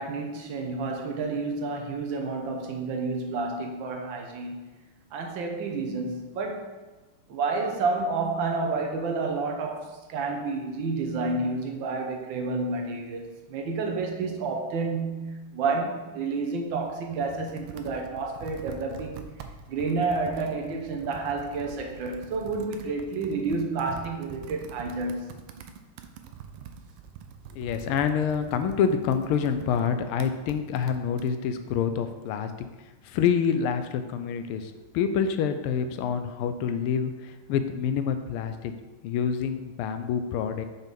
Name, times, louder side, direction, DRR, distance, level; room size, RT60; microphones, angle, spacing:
voice 1, 0.0-4.7 5.1-6.7 7.3-19.2 19.7-25.4, right 3 dB, 70° right, 2 dB, 1.5 m, -30 dB
Computer keyboard, 16.9-31.3, right 7 dB, 90° right, 1.5 m, -45 dB
voice 2, 27.5-32.5 33.0-38.7 39.0-40.7, left 7 dB, 85° left, 9 dB, 1.5 m, -27 dB
6.2 x 4.0 x 5.2 m, 1.2 s
omnidirectional pair, 2.3 m